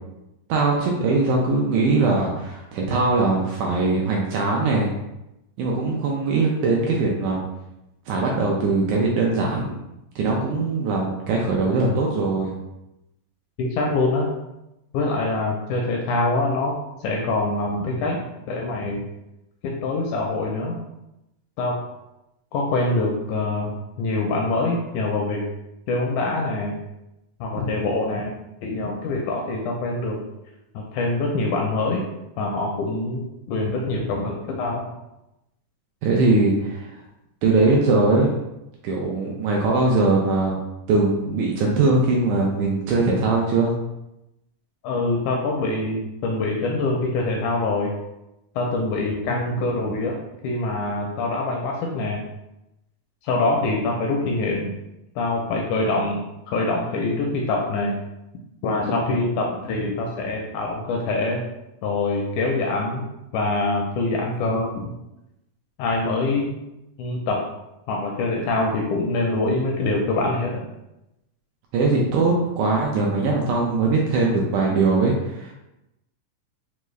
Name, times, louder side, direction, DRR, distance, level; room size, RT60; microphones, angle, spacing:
voice 1, 0.5-5.0 5.6-7.4 8.1-9.7 10.2-12.5 36.0-36.9 37.4-38.3 38.8-40.6 40.9-43.7 71.7-75.5, right 3 dB, 80° right, -1 dB, 1.8 m, -21 dB
voice 2, 13.6-14.3 14.9-16.8 17.0-18.2 18.5-19.0 19.6-20.8 21.6-21.8 22.5-25.5 25.9-26.7 27.4-28.4 28.6-30.2 30.8-32.0 32.4-34.9 44.8-47.9 48.6-50.2 50.4-52.2 53.2-54.7 55.2-57.9 58.6-61.4 61.8-63.1 63.3-64.9 65.8-66.5 67.0-67.4 67.9-70.6, left 2 dB, 80° left, 0 dB, 1.8 m, -24 dB
5.3 x 2.4 x 3.1 m, 0.90 s
omnidirectional pair, 3.9 m